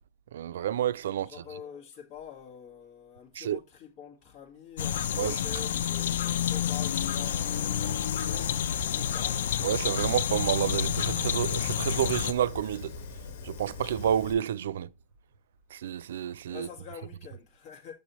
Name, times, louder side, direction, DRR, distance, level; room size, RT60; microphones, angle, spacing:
voice 1, 0.3-1.3 3.4-3.6 5.2-5.4 9.6-12.9 13.4-14.9 15.7-16.7, right 10 dB, 90° right, 0.3 m, -29 dB
voice 2, 1.2-9.4 16.5-17.9, left 8 dB, 35° left, 1.9 m, -46 dB
sound 1, 4.8-12.3, left 10 dB, 85° left, 0.4 m, -29 dB
Fire, 6.3-14.3, left 4 dB, 70° left, 1.5 m, -42 dB
sound 2, 9.1-16.0, right 3 dB, 35° right, 2.1 m, -44 dB
6.9 x 6.5 x 3.1 m
supercardioid pair, 170°, 0 cm